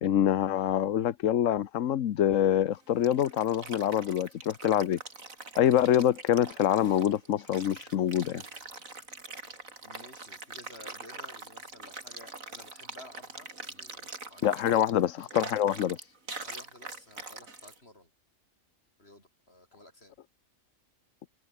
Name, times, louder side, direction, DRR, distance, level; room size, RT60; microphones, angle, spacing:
voice 1, 0.0-5.0 5.6-8.4 14.4-16.1, left 11 dB, 70° left, 1.2 m, -25 dB
sound 1, 2.7-17.8, right 3 dB, 90° right, 4.0 m, -44 dB
voice 2, 9.8-15.0 16.4-18.1 19.0-20.2, left 1 dB, 50° left, 7.8 m, -53 dB
omnidirectional pair, 1.4 m